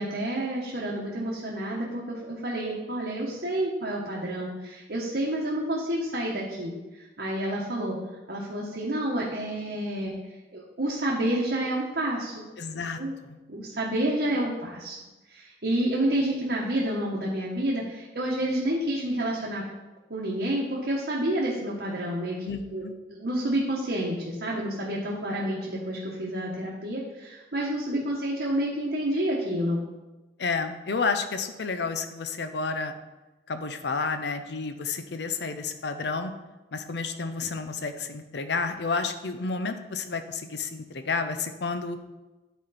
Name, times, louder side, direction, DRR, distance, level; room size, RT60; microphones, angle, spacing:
voice 1, 0.0-8.0 8.3-10.2 10.5-12.4 13.0-13.1 13.5-15.0 15.3-19.6 20.1-22.4 22.7-22.8 23.1-29.8, right 1 dB, 70° right, -5 dB, 1.2 m, -29 dB
voice 2, 12.6-13.4 22.4-22.9 30.4-32.9 33.5-36.3 36.7-42.0, left 4 dB, 70° left, 9 dB, 0.6 m, -31 dB
9.3 x 4.4 x 4.1 m, 1.1 s
head